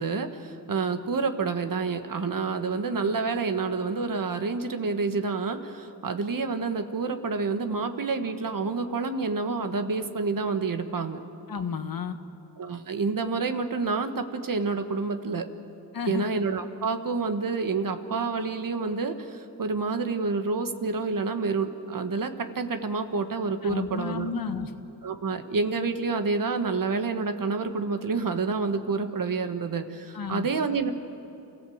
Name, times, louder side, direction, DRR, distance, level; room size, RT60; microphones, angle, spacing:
voice 1, 0.0-11.2 12.6-15.5 16.0-24.3 25.0-30.9, right 4 dB, 50° right, 8 dB, 1.6 m, -28 dB
voice 2, 11.5-12.2 15.9-16.3 23.6-24.7 30.1-30.5, left 5 dB, 55° left, 8 dB, 1.6 m, -31 dB
27.5 x 15.0 x 7.9 m, 2.7 s
cardioid pair, 55°, 41 cm